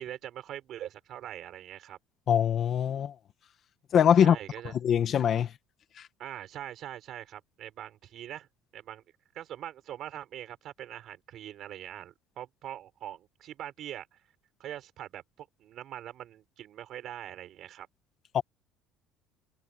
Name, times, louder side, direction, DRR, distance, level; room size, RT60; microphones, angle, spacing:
voice 1, 0.0-2.0 4.2-4.7 6.2-8.5 8.7-9.0 9.3-14.1 14.6-17.9, right 11 dB, 45° right, 5.5 m, -42 dB
voice 2, 2.3-3.1 3.9-4.4 4.6-5.5 6.0-6.1 18.3-18.4, left 8 dB, 40° left, 1.7 m, -23 dB
cardioid pair, 155°, 0 cm